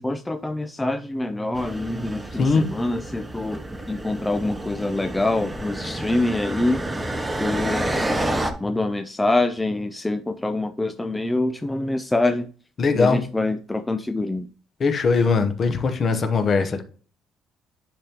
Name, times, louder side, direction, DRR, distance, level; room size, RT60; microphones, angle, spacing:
voice 1, 0.0-3.6 3.9-6.8 7.4-8.0 8.6-12.5 12.9-14.5, left 2 dB, 10° left, 0.4 m, -25 dB
sound 1, 1.6-8.5, right 1 dB, 10° right, 0.7 m, -29 dB
voice 2, 12.8-13.2 14.8-16.8, left 4 dB, 35° left, 0.9 m, -20 dB
9.9 x 3.6 x 2.9 m
cardioid pair, 140°, 0 cm